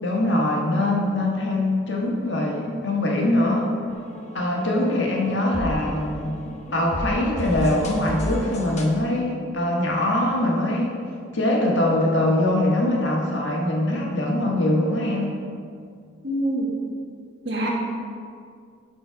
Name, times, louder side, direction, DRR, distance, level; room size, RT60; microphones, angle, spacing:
voice 1, 0.0-3.7 4.3-6.3 6.7-11.0 11.3-15.4, left 1 dB, 70° left, -1 dB, 1.5 m, -22 dB
sound 1, 3.9-8.9, left 1 dB, 35° left, 0.8 m, -33 dB
voice 2, 16.2-16.7 17.4-17.7, right 1 dB, 60° right, -2 dB, 1.5 m, -25 dB
11.5 x 4.3 x 4.7 m, 2.3 s
head